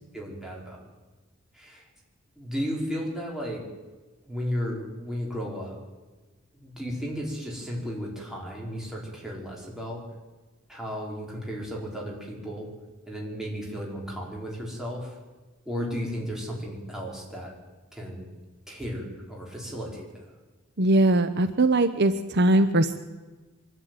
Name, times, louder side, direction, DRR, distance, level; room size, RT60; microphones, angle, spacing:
voice 1, 0.1-0.8 1.5-1.9 2.4-3.7 4.2-5.8 6.5-10.0 10.7-12.7 13.1-15.2 15.6-17.6 17.9-18.3 18.7-20.2, equal, ahead, -3 dB, 5.1 m, -34 dB
voice 2, 20.8-23.0, right 1 dB, 50° right, 10 dB, 0.8 m, -21 dB
24.0 x 12.5 x 9.4 m, 1.3 s
head